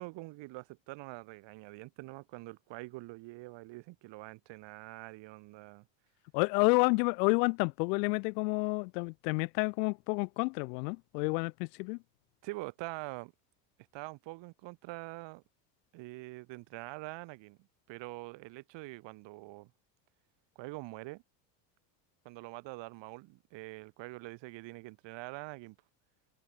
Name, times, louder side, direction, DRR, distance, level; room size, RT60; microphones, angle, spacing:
voice 1, 0.0-5.9 12.4-13.3 13.9-15.4 15.9-19.7 20.6-21.2 22.2-25.8, right 21 dB, 60° right, 7.3 m, -45 dB
voice 2, 6.3-12.0, left 31 dB, 75° left, 0.7 m, -30 dB
supercardioid pair, 125°, 49 cm